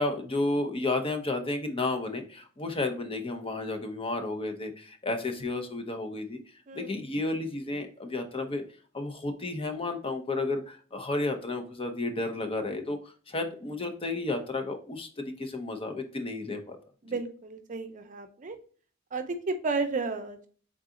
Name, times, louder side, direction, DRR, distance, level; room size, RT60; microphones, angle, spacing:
voice 1, 0.0-6.4 6.7-8.6 8.9-16.8, left 2 dB, 30° left, 6 dB, 0.6 m, -32 dB
voice 2, 6.7-7.0 17.0-18.6 19.1-20.5, right 3 dB, 40° right, 7 dB, 0.6 m, -33 dB
3.9 x 3.7 x 3.7 m, 0.42 s
head